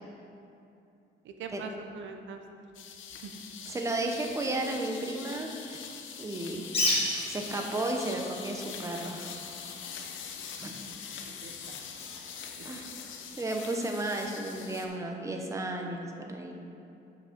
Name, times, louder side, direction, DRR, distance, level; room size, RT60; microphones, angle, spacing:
voice 1, 1.2-2.4 3.2-3.4 11.1-11.8 12.6-12.9, right 5 dB, 75° right, 5 dB, 0.8 m, -43 dB
sound 1, 2.7-14.9, left 7 dB, 80° left, 0.7 m, -43 dB
voice 2, 3.7-5.8 6.2-6.6 7.3-9.3 10.6-10.7 12.6-12.9 13.4-16.5, right 2 dB, 15° right, 2 dB, 0.7 m, -33 dB
Bird, 6.6-13.3, left 2 dB, 30° left, 1.5 m, -36 dB
6.3 x 5.9 x 5.9 m, 2.7 s
cardioid pair, 145°, 20 cm